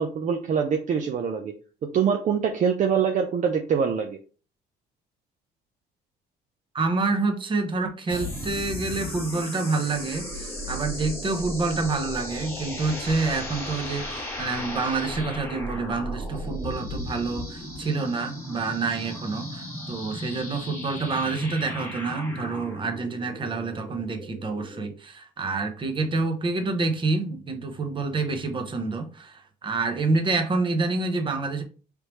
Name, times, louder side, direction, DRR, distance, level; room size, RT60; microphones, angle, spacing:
voice 1, 0.0-1.5 1.9-4.2, right 7 dB, 45° right, 4 dB, 0.6 m, -24 dB
voice 2, 6.7-31.6, right 3 dB, 30° right, 5 dB, 1.0 m, -27 dB
sound 1, 8.1-24.9, left 1 dB, 15° left, 1.8 m, -36 dB
4.6 x 3.4 x 3.1 m, 0.37 s
cardioid pair, 110°, 17 cm